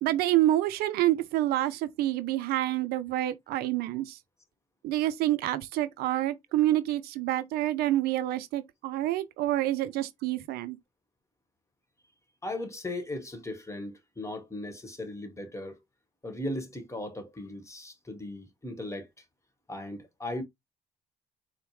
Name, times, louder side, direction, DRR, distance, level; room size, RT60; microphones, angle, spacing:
voice 1, 0.0-4.2 4.8-10.8, right 14 dB, 75° right, 0.5 m, -27 dB
voice 2, 12.4-15.8 16.2-19.1 19.7-20.4, left 1 dB, 20° left, 1.3 m, -37 dB
4.3 x 2.1 x 3.1 m
hypercardioid pair, 60°, 16 cm